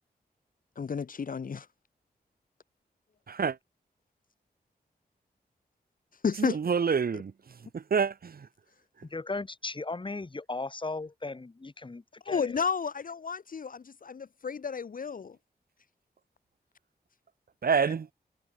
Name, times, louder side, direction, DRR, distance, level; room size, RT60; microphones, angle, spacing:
voice 1, 0.8-1.7 6.2-6.6 12.3-15.4, left 6 dB, 55° left, 1.5 m, -32 dB
voice 2, 3.3-3.6 6.4-8.5 17.6-18.1, right 6 dB, 65° right, 2.8 m, -28 dB
voice 3, 9.0-12.6, left 3 dB, 30° left, 7.7 m, -37 dB
wide cardioid pair, 130°, 17 cm